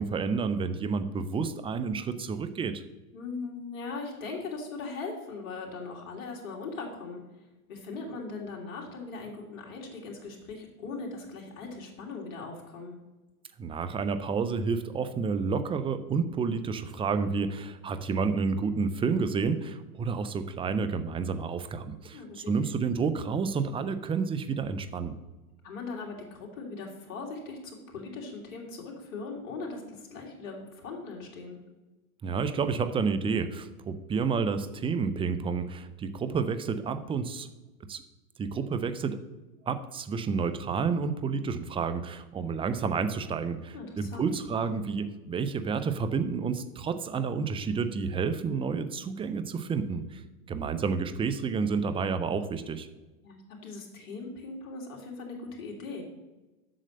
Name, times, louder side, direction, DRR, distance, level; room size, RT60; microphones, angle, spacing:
voice 1, 0.0-2.8 13.6-25.1 32.2-37.5 37.9-38.0 38.4-39.2 39.6-50.2 50.5-52.9, right 5 dB, 10° right, 10 dB, 0.5 m, -30 dB
voice 2, 3.1-7.2 7.7-13.0 22.1-22.7 25.6-31.6 43.7-44.3 53.2-56.0, left 3 dB, 65° left, -1 dB, 3.0 m, -39 dB
7.7 x 6.3 x 7.7 m, 1.1 s
hypercardioid pair, 110°, 44 cm